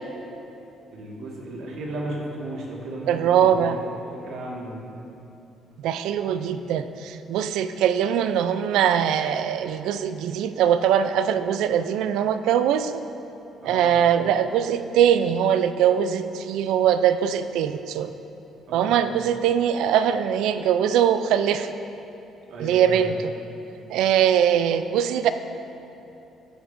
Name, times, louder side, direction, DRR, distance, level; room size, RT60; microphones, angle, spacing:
voice 1, 0.9-3.9 4.2-4.8 13.6-13.9 18.7-18.9 22.5-23.1, right 1 dB, 75° right, -2 dB, 1.7 m, -34 dB
voice 2, 3.1-3.8 5.8-13.0 13.6-18.1 18.7-21.8 22.6-23.3 23.9-25.3, right 9 dB, 90° right, 11 dB, 0.3 m, -22 dB
13.0 x 8.0 x 2.6 m, 2.8 s
cardioid pair, 115°, 0 cm